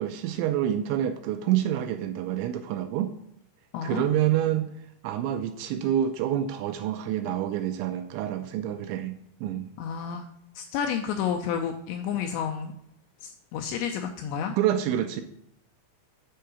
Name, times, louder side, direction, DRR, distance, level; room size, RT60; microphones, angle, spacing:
voice 1, 0.0-3.1 3.8-4.7 5.0-9.1 9.4-9.7 14.6-15.2, right 11 dB, 85° right, 8 dB, 2.7 m, -27 dB
voice 2, 3.7-4.0 9.8-10.3 10.6-12.7 13.2-14.6, left 7 dB, 85° left, 4 dB, 2.5 m, -30 dB
7.7 x 4.6 x 6.8 m, 0.74 s
omnidirectional pair, 5.6 m